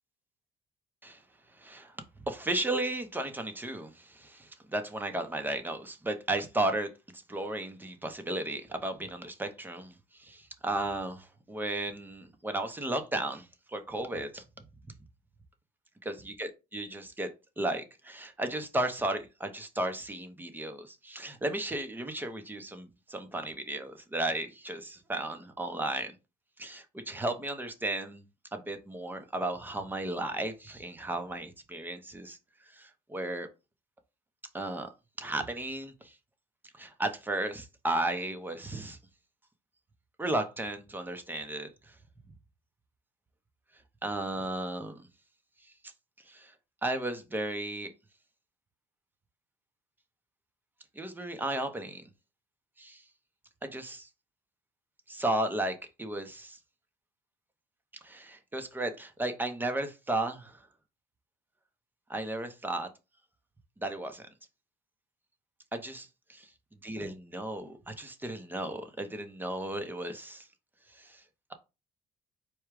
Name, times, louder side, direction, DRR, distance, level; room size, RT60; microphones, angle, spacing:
voice 1, 1.6-1.9 2.3-14.4 16.0-17.3 17.6-26.1 26.6-28.2 28.5-32.4 32.7-33.5 34.5-34.9 35.2-36.2 36.8-39.0 40.2-42.0 44.0-45.1 45.8-45.9 46.3-46.5 46.8-47.9 50.9-52.1 52.8-53.0 53.6-54.1 55.1-56.6 58.0-60.7 62.1-62.9 63.8-64.2 65.7-66.5 66.8-70.5 70.9-71.2, right 1 dB, 10° right, 0.9 m, -34 dB
4.6 x 2.4 x 4.8 m
cardioid pair, 110°, 17 cm